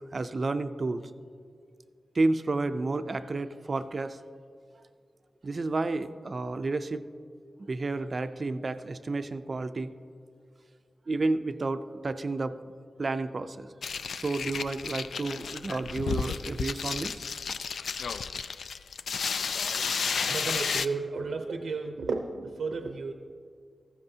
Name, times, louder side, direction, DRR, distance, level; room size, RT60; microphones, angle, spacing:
voice 1, 0.1-1.1 2.1-4.2 5.4-7.0 7.6-9.9 11.1-12.6 13.0-13.7 14.1-17.2, right 3 dB, 40° right, 11 dB, 0.4 m, -31 dB
sound 1, 13.8-20.9, left 5 dB, 85° left, 0.3 m, -32 dB
voice 2, 20.3-23.1, right 4 dB, 85° right, 4 dB, 0.6 m, -33 dB
15.0 x 13.0 x 2.7 m, 2.2 s
wide cardioid pair, 130°, 0 cm